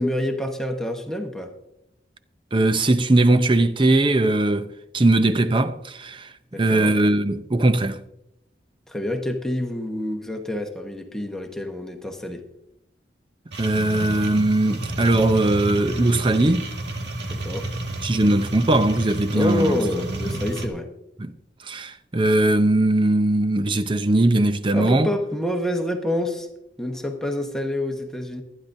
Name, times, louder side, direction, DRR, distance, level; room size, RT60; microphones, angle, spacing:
voice 1, 0.0-1.5 6.5-6.9 8.9-12.5 17.3-17.7 19.3-20.9 24.7-26.5 26.8-28.4, left 1 dB, 5° left, 1.1 m, -27 dB
voice 2, 2.5-8.0 13.6-16.7 18.0-19.7 20.3-20.4 21.2-21.3 21.6-25.1, right 2 dB, 25° right, 0.6 m, -20 dB
sound 1, 13.5-20.7, right 1 dB, 70° right, 1.8 m, -30 dB
24.0 x 10.0 x 2.7 m
head